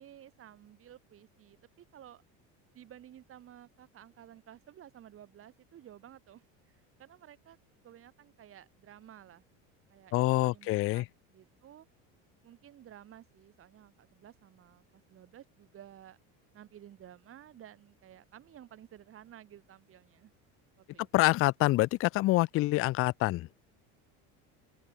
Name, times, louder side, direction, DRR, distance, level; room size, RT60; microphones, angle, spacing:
voice 1, 0.0-2.2 2.7-7.6 7.8-9.4 9.9-11.9 12.4-16.2 16.5-20.3 20.8-21.4, right 11 dB, 40° right, 2.4 m, -54 dB
voice 2, 10.1-11.0 21.1-23.5, left 19 dB, 40° left, 0.4 m, -26 dB
open air
supercardioid pair, 120°, 34 cm